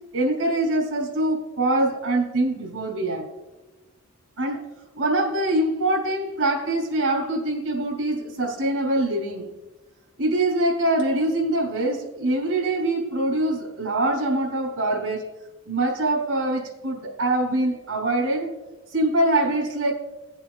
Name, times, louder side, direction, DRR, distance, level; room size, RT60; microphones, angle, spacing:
voice 1, 0.1-3.3 4.4-4.6 4.9-9.5 10.2-15.3 15.7-18.5 18.9-19.9, right 1 dB, 75° right, -1 dB, 2.9 m, -24 dB
17.5 x 7.0 x 2.4 m, 1.1 s
head